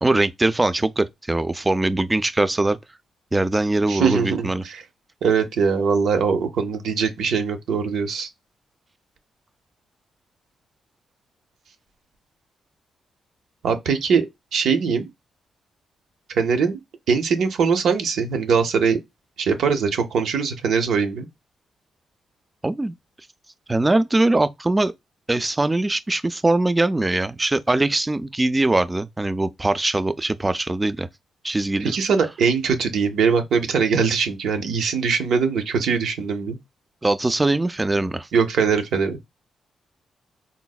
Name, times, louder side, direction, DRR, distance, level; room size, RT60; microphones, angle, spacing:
voice 1, 0.0-2.8 3.3-4.6 22.6-22.9 23.7-24.9 25.3-31.1 31.4-31.9 37.0-38.3, right 2 dB, 20° right, 0.3 m, -21 dB
voice 2, 3.9-4.8 5.2-8.3 13.6-14.2 14.5-15.1 16.3-16.8 17.1-19.0 19.4-21.3 31.8-36.6 38.3-39.2, right 6 dB, 80° right, 0.6 m, -21 dB
3.9 x 2.0 x 2.3 m
cardioid pair, 80°, 0 cm